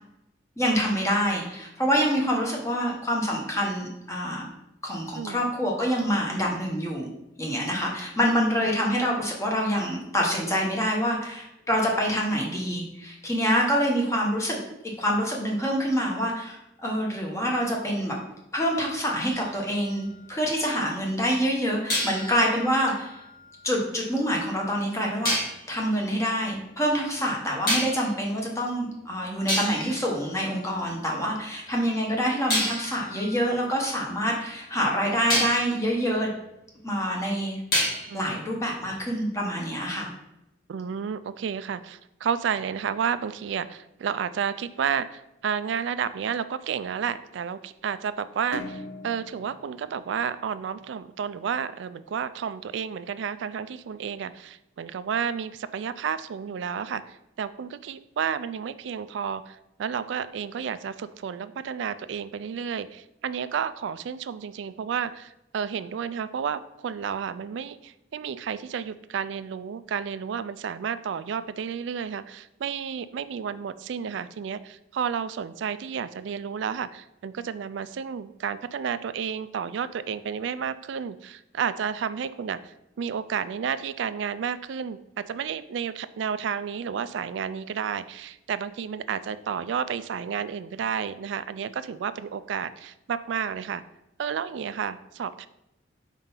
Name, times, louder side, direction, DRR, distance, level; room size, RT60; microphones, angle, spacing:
voice 1, 0.6-4.5 4.8-7.1 7.4-14.6 15.0-18.2 18.5-23.2 23.6-25.4 25.7-36.3 36.8-37.6 38.1-40.1, equal, 15° left, -1 dB, 1.1 m, -26 dB
sound 1, 19.3-20.7 21.9-24.0 25.2-25.7 27.7-28.2 29.0-29.1 29.5-31.1 32.5-34.7 35.3-35.7 37.7-38.3, left 1 dB, 55° left, 2.2 m, -31 dB
voice 2, 38.0-38.4 40.7-93.8 94.2-95.5, right 7 dB, 65° right, 14 dB, 0.3 m, -31 dB
sound 2, 48.5-51.1, left 2 dB, 85° left, 0.7 m, -41 dB
4.5 x 3.8 x 5.5 m, 0.88 s
head